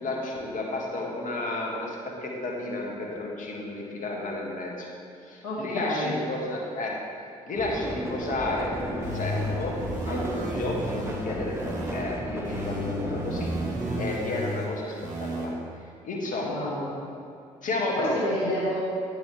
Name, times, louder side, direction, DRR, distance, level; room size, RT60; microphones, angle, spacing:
voice 1, 0.0-4.9 5.2-6.9 7.5-9.7 10.1-13.5 14.0-14.9 15.2-15.5 16.0-16.6 17.6-18.2, left 2 dB, 50° left, -2 dB, 1.8 m, -32 dB
voice 2, 5.4-6.1 16.4-16.9 17.8-18.8, left 1 dB, 75° left, -6 dB, 2.0 m, -30 dB
sound 1, 7.5-14.0, right 1 dB, 15° right, 1.0 m, -34 dB
sound 2, 9.0-12.0 12.4-15.4, equal, 45° right, 1.7 m, -33 dB
9.2 x 6.9 x 3.5 m, 2.5 s
hypercardioid pair, 50°, 17 cm